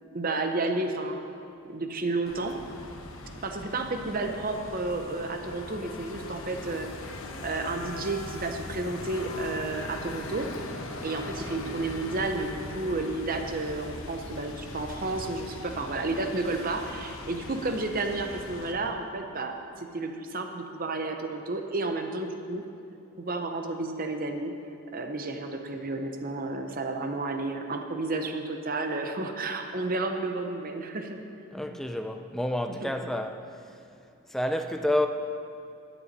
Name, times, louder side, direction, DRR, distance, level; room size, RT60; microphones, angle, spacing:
voice 1, 0.1-1.2 1.7-2.5 3.4-10.5 11.0-22.6 23.2-24.5 24.9-31.2 31.7-31.8 32.8-32.9, right 2 dB, 40° right, 0.8 m, -31 dB
sound 1, 2.3-18.7, left 2 dB, 65° left, 1.0 m, -40 dB
voice 2, 31.5-33.5 34.3-35.1, left 1 dB, ahead, 0.4 m, -29 dB
13.5 x 10.0 x 4.2 m
head